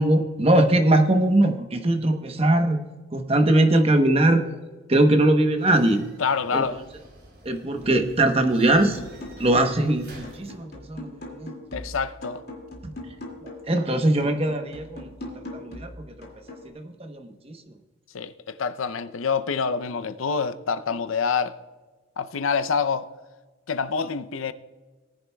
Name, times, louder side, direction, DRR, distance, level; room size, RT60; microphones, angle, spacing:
voice 1, 0.0-2.8 3.1-4.4 4.9-6.0 6.5-6.6 7.4-9.0 9.4-11.5 12.8-12.9 13.4-16.3 16.7-17.6, right 1 dB, 30° right, 0.9 m, -21 dB
sound 1, 5.6-10.5, right 1 dB, 50° right, 3.6 m, -48 dB
voice 2, 6.2-6.8 11.7-12.4 18.1-21.6 22.2-23.1 23.7-24.5, left 5 dB, 90° left, 0.6 m, -26 dB
sound 2, 8.7-9.9 10.2-13.8 14.2-16.7, left 1 dB, 50° left, 2.3 m, -41 dB
19.0 x 10.5 x 2.3 m
head